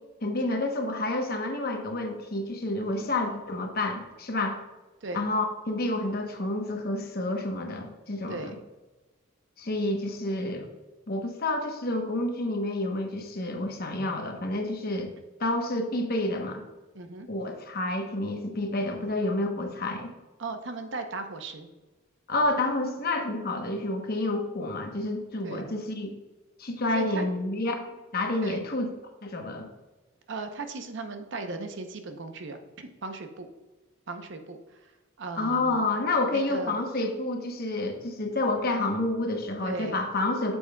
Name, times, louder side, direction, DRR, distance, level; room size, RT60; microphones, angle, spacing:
voice 1, 0.2-4.6 5.1-8.5 9.6-10.7 11.1-15.1 15.4-16.6 17.3-20.1 22.3-26.1 26.6-27.8 28.1-28.9 29.2-29.7 35.4-40.6, left 2 dB, 45° left, 4 dB, 0.9 m, -29 dB
voice 2, 8.3-8.6 16.9-17.3 20.4-21.7 25.4-25.7 26.9-27.3 28.4-28.6 30.3-33.5 34.1-34.9 35.2-35.8 36.3-36.8 39.6-40.0, right 3 dB, 60° right, 7 dB, 0.7 m, -37 dB
8.3 x 7.1 x 2.2 m, 1.2 s
head